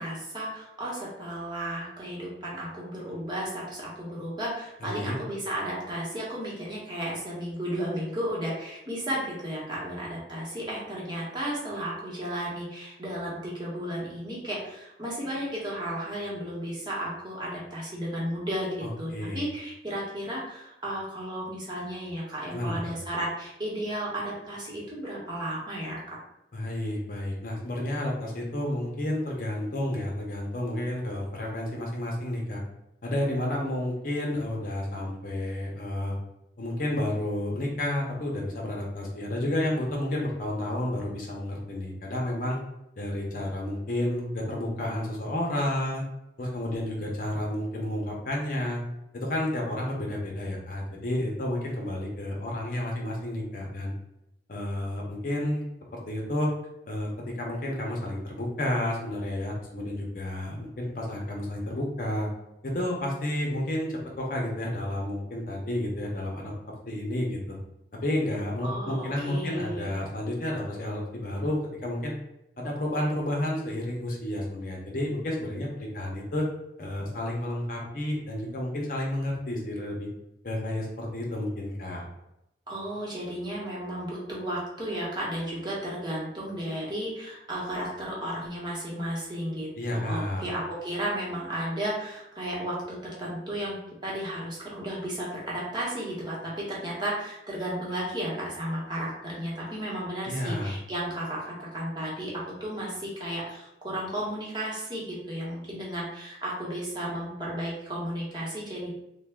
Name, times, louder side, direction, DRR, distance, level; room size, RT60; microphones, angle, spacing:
voice 1, 0.0-26.2 68.6-69.9 82.7-108.9, right 1 dB, 25° right, -5 dB, 1.1 m, -34 dB
voice 2, 4.8-5.2 18.8-19.4 22.5-23.0 26.5-32.6 33.0-36.2 36.6-42.6 43.0-46.0 46.4-48.8 49.1-53.9 54.5-55.6 55.9-56.5 56.9-62.3 62.6-66.5 66.9-67.6 68.0-72.1 72.6-76.5 76.8-80.1 80.4-82.0 89.8-90.5 100.3-100.7, left 1 dB, 50° left, -2 dB, 0.7 m, -31 dB
3.4 x 2.2 x 3.5 m, 0.87 s
head